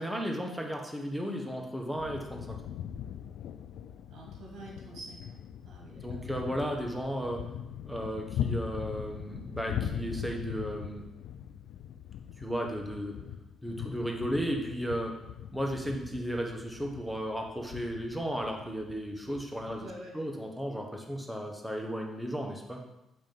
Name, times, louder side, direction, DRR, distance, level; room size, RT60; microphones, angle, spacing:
voice 1, 0.0-2.6 5.9-7.5 7.9-11.0 12.4-13.2 13.6-15.2 15.5-19.9 20.1-22.8, equal, ahead, 1 dB, 1.1 m, -34 dB
sound 1, 2.0-19.9, left 9 dB, 85° left, 0.3 m, -41 dB
voice 2, 4.1-6.3 19.8-20.2, right 1 dB, 70° right, -2 dB, 1.7 m, -47 dB
7.5 x 3.0 x 5.3 m, 0.93 s
cardioid pair, 90°, 0 cm